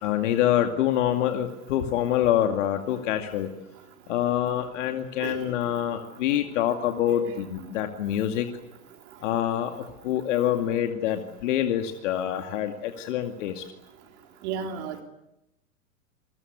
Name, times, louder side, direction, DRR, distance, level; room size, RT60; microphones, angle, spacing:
voice 1, 0.0-3.5 4.1-8.5 9.2-13.6, left 11 dB, 55° left, 6 dB, 2.3 m, -26 dB
voice 2, 14.4-15.0, right 7 dB, 50° right, 5 dB, 3.5 m, -33 dB
27.5 x 22.5 x 8.3 m, 0.88 s
figure-of-eight pair, 95°, 43 cm